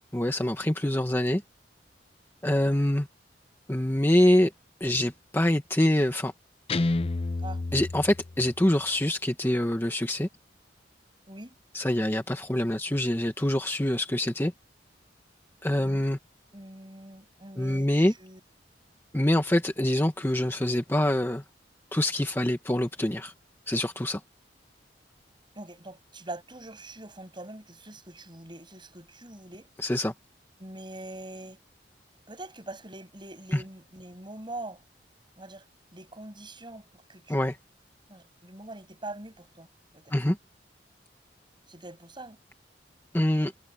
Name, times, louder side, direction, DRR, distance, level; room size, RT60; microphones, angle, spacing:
voice 1, 0.1-1.4 2.4-3.1 3.7-4.5 4.8-6.3 7.7-10.3 11.7-14.5 15.6-16.2 17.6-18.1 19.1-21.4 21.9-23.3 23.7-24.2 29.8-30.1 33.5-33.6 37.3-37.6 40.1-40.4 43.1-43.5, left 1 dB, 15° left, 1.1 m, -25 dB
Guitar, 6.7-8.7, left 2 dB, 35° left, 0.5 m, -30 dB
voice 2, 16.5-18.4 25.6-29.7 30.6-31.6 32.3-34.8 35.4-35.6 35.9-37.4 38.1-39.7 39.9-40.1 41.7-42.4, right 2 dB, 25° right, 7.1 m, -43 dB
head